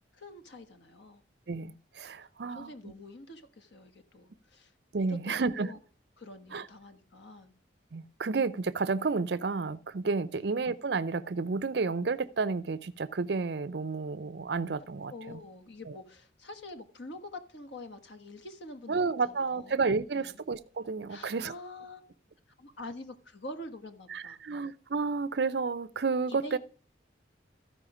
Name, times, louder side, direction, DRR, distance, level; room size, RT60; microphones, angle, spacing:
voice 1, 0.1-1.2 2.4-4.7 5.0-5.8 6.2-7.5 10.3-10.4 15.1-19.8 20.1-20.3 21.1-22.1 22.6-24.7 26.3-26.6, left 1 dB, 70° left, 1.4 m, -46 dB
voice 2, 1.5-2.7 4.9-5.7 6.5-6.7 7.9-15.4 15.9-16.0 18.9-21.5 24.1-26.6, right 4 dB, 60° right, 0.5 m, -31 dB
14.5 x 5.0 x 4.9 m
head